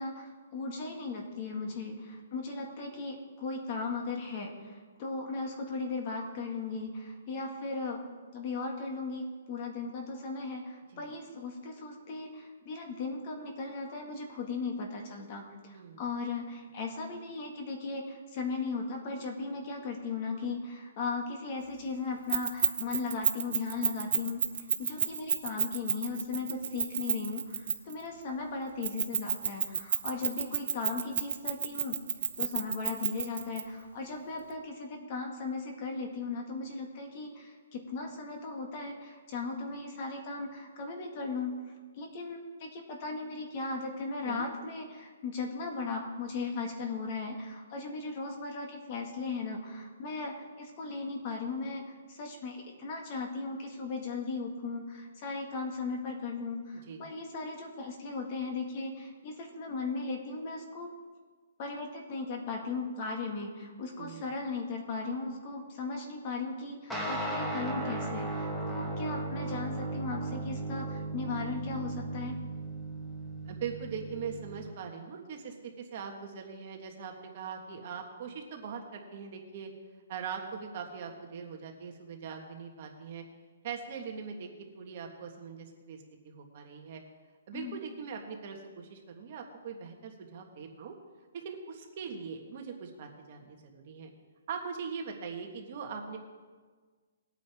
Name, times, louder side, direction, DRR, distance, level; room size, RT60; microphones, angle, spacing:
voice 1, 0.0-8.0 8.3-24.4 24.8-32.0 32.4-41.5 42.0-60.9 61.6-72.4 87.5-87.8, left 4 dB, 30° left, 2 dB, 1.8 m, -37 dB
Keys jangling, 22.3-28.0 28.8-33.6, right 7 dB, 65° right, 1.1 m, -30 dB
voice 2, 64.0-64.3 73.4-79.7 80.1-83.2 83.6-87.0 87.5-90.9 91.3-94.1 94.5-96.2, right 6 dB, 40° right, 2 dB, 1.6 m, -41 dB
sound 1, 66.9-74.7, right 2 dB, 5° left, 1.2 m, -36 dB
20.5 x 9.0 x 3.6 m, 1.5 s
hypercardioid pair, 170°, 0 cm